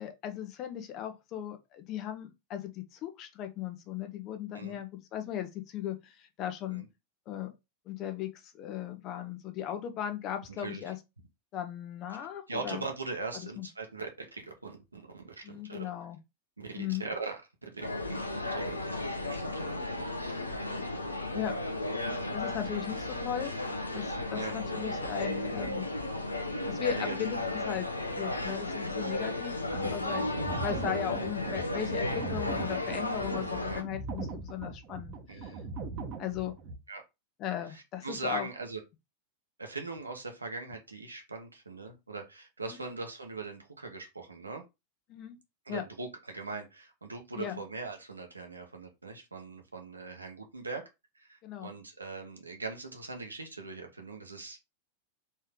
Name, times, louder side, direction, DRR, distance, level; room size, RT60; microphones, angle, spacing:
voice 1, 0.0-6.8 7.3-7.5 7.9-11.0 11.5-12.8 13.3-13.7 15.4-16.2 16.7-17.1 20.6-20.8 21.3-21.6 22.3-23.5 23.9-25.9 26.7-35.6 36.2-36.5 37.4-38.5 42.7-42.8 45.1-45.4 45.7-45.8 47.4-47.6 51.4-51.7, left 10 dB, 35° left, 0.8 m, -37 dB
voice 2, 12.5-15.8 16.6-18.2 18.5-19.7 20.0-20.1 22.6-22.8 24.3-24.6 26.9-27.6 29.8-29.9 31.9-32.0 33.6-33.8 35.3-35.6 36.9-37.0 37.7-38.8 39.6-44.6 45.6-50.9 51.1-54.6, right 3 dB, 80° right, 1.1 m, -41 dB
sound 1, 17.8-33.8, left 2 dB, 80° left, 0.7 m, -34 dB
sound 2, 29.6-36.8, right 4 dB, 35° right, 1.0 m, -40 dB
4.3 x 3.2 x 3.6 m
figure-of-eight pair, 90°, 0 cm